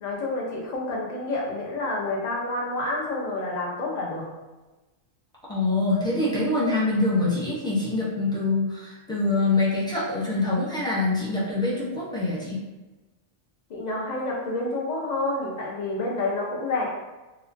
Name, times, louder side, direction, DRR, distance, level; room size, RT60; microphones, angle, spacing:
voice 1, 0.0-4.3 13.7-16.9, left 2 dB, 45° left, -3 dB, 0.6 m, -29 dB
voice 2, 5.5-12.6, left 2 dB, 5° left, -7 dB, 0.4 m, -25 dB
2.8 x 2.2 x 2.5 m, 1.1 s
omnidirectional pair, 1.3 m